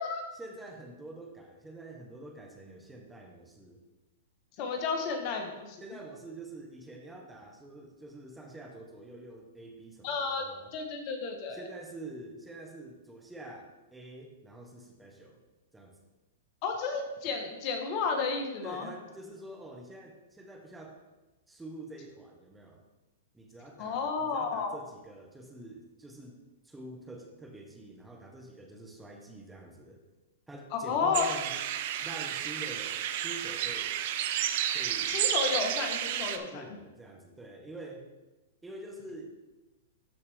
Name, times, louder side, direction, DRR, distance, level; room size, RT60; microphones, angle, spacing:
voice 1, 0.3-3.8 5.8-10.7 11.5-15.4 15.7-15.9 18.6-21.0 21.5-22.8 23.3-26.4 26.6-30.0 30.5-31.6 32.0-34.0 34.7-35.3 36.5-38.1 38.6-39.3, right 2 dB, 10° right, 2 dB, 1.1 m, -46 dB
voice 2, 4.6-5.8 10.0-10.4 10.7-11.6 16.6-18.9 23.8-24.7 30.7-31.2 35.1-36.6, left 5 dB, 45° left, 4 dB, 1.3 m, -32 dB
sound 1, 31.1-36.4, right 11 dB, 55° right, 0.6 m, -31 dB
12.5 x 4.2 x 3.5 m, 1.1 s
hypercardioid pair, 125°, 0 cm